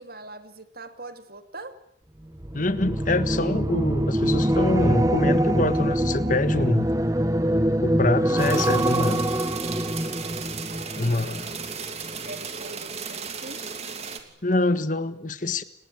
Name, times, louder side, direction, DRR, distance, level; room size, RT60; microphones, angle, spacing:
voice 1, 0.0-1.8 10.7-11.6 12.1-13.6, right 2 dB, 50° right, 9 dB, 2.7 m, -42 dB
sound 1, 2.3-11.7 12.1-12.4, right 1 dB, 15° right, 1.1 m, -24 dB
voice 2, 2.5-6.9 7.8-9.3 10.9-11.5 14.4-15.6, left 2 dB, 40° left, 13 dB, 1.5 m, -25 dB
sound 2, 8.4-14.2, right 5 dB, 35° right, 2.9 m, -35 dB
29.5 x 19.5 x 9.4 m, 0.72 s
head